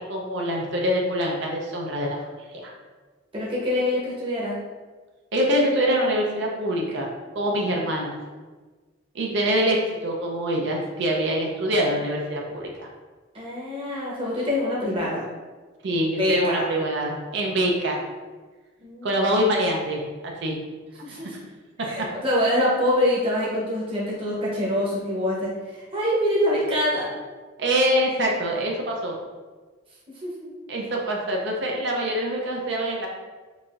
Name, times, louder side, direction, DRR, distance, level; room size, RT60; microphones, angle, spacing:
voice 1, 0.0-2.2 2.5-2.7 5.3-7.1 7.3-8.2 9.1-12.9 15.8-18.0 19.0-20.6 21.1-21.3 21.8-22.1 27.6-29.1 30.7-33.1, equal, 65° right, -1 dB, 0.5 m, -25 dB
voice 2, 3.3-4.6 13.3-15.3 16.2-16.6 18.8-19.1 21.0-21.4 21.8-27.1 30.2-30.5, left 1 dB, 30° right, -6 dB, 0.9 m, -25 dB
4.7 x 2.6 x 2.4 m, 1.3 s
head